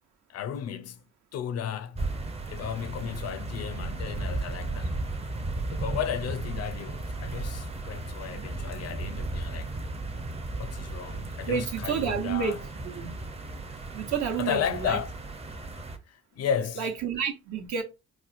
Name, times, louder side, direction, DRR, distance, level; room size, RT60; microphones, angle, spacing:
voice 1, 0.3-1.0 1.3-2.0 2.5-4.9 5.7-9.7 10.6-12.6 14.4-15.1 16.1-16.8, left 8 dB, 55° left, 0.4 m, -33 dB
sound 1, 1.9-16.0, right 2 dB, 20° right, 0.5 m, -35 dB
voice 2, 11.5-12.6 12.8-13.1 13.9-15.0 16.8-17.8, right 7 dB, 70° right, 0.9 m, -30 dB
4.2 x 2.1 x 2.5 m
cardioid pair, 90°, 30 cm